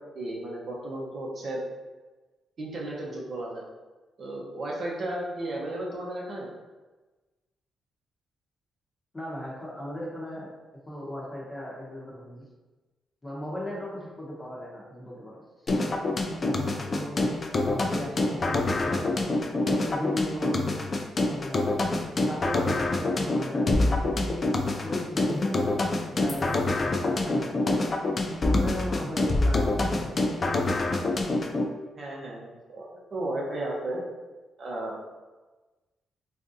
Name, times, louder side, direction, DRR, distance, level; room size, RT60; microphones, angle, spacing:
voice 1, 0.1-1.6 2.6-3.7 4.2-6.5 32.0-34.0 34.6-35.1, right 1 dB, 50° right, -3 dB, 0.7 m, -34 dB
voice 2, 9.1-10.5 10.9-12.5 13.2-16.1 16.4-19.3 19.7-20.9 21.3-21.8 22.2-24.4 24.8-27.8 28.4-30.7, left 1 dB, 15° left, -4 dB, 0.8 m, -37 dB
sound 1, 15.7-31.7, left 2 dB, 35° left, 0.3 m, -26 dB
3.4 x 2.5 x 2.6 m, 1.2 s
cardioid pair, 110°, 0 cm